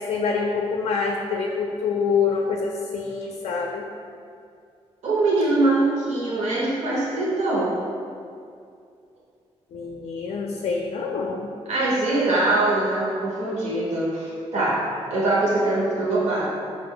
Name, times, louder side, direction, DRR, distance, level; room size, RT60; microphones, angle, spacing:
voice 1, 0.0-3.9 9.7-11.5, left 5 dB, 65° left, 1 dB, 0.4 m, -26 dB
voice 2, 5.0-7.7 11.7-14.8 15.1-16.5, right 2 dB, 80° right, -7 dB, 0.9 m, -22 dB
4.7 x 2.5 x 3.7 m, 2.4 s
cardioid pair, 110°, 11 cm